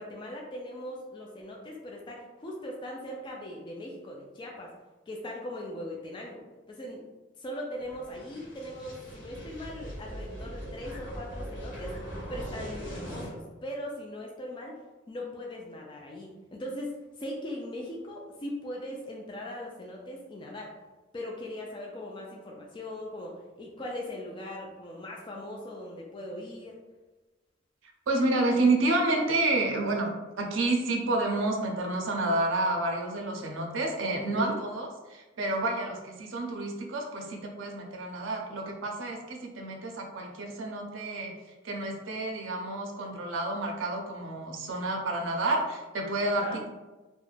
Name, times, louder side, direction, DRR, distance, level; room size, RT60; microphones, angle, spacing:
voice 1, 0.0-4.7 5.1-7.0 7.4-12.0 12.3-14.7 15.1-20.8 21.1-26.8 34.2-34.5 46.3-46.6, left 1 dB, 25° left, -1 dB, 0.3 m, -40 dB
sound 1, 7.8-13.3, equal, 85° left, 1.0 m, -40 dB
voice 2, 28.1-41.3 41.6-46.7, right 2 dB, 85° right, 1 dB, 0.5 m, -29 dB
2.4 x 2.1 x 3.1 m, 1.2 s
head